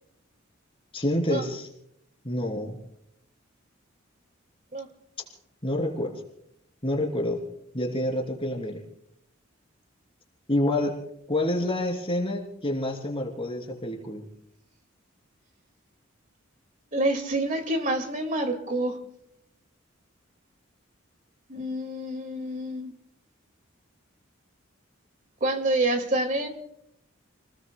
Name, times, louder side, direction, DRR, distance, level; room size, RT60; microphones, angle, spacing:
voice 1, 0.9-1.7 2.2-2.8 5.6-6.1 6.8-7.4 7.7-8.8 10.5-11.0 11.3-14.3, left 1 dB, 25° left, 2 dB, 3.0 m, -28 dB
voice 2, 16.9-19.0 21.5-22.9 25.4-26.5, right 1 dB, 40° right, 6 dB, 2.1 m, -27 dB
30.0 x 20.0 x 2.2 m, 0.73 s
head